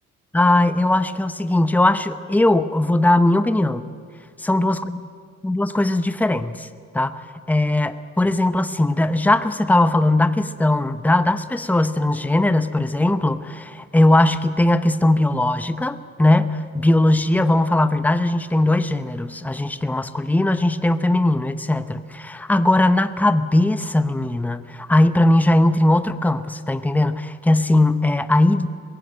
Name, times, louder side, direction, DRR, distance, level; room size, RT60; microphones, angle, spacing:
voice 1, 0.3-3.8 4.4-5.0 5.4-6.7 6.9-7.2 7.5-28.7, left 1 dB, 5° left, 11 dB, 0.8 m, -19 dB
21.0 x 16.0 x 9.0 m, 2.2 s
cardioid pair, 90°, 30 cm